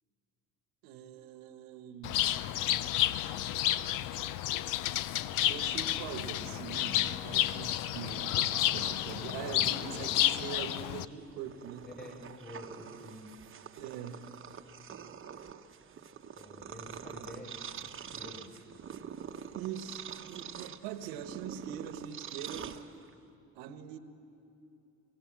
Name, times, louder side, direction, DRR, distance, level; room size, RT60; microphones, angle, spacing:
voice 1, 0.8-2.2 5.4-11.9 13.8-14.2 19.5-22.7 23.5-24.0, right 8 dB, 80° right, 10 dB, 1.2 m, -43 dB
Bird, 2.0-11.0, left 13 dB, 60° left, 0.7 m, -31 dB
Purr, 8.1-23.3, right 8 dB, 35° right, 1.0 m, -46 dB
voice 2, 9.3-10.2 11.8-13.3 16.3-18.5, left 1 dB, 30° left, 1 dB, 6.6 m, -49 dB
28.0 x 16.5 x 7.4 m, 2.8 s
supercardioid pair, 75°, 35 cm